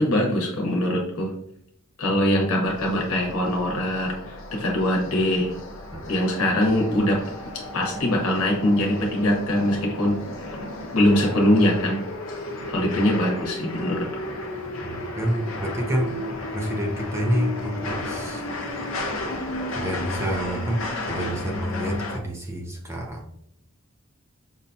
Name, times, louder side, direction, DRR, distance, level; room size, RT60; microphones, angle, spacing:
voice 1, 0.0-1.3 2.0-5.5 6.1-7.2 7.7-10.2 10.4-10.6 10.9-12.0 12.7-14.1, left 1 dB, 85° left, -1 dB, 1.0 m, -22 dB
sound 1, 2.6-22.2, left 2 dB, 65° left, 0.6 m, -33 dB
voice 2, 14.8-16.1 16.5-18.4 19.7-23.2, equal, 10° right, 0 dB, 0.5 m, -28 dB
5.3 x 2.3 x 2.6 m, 0.72 s
head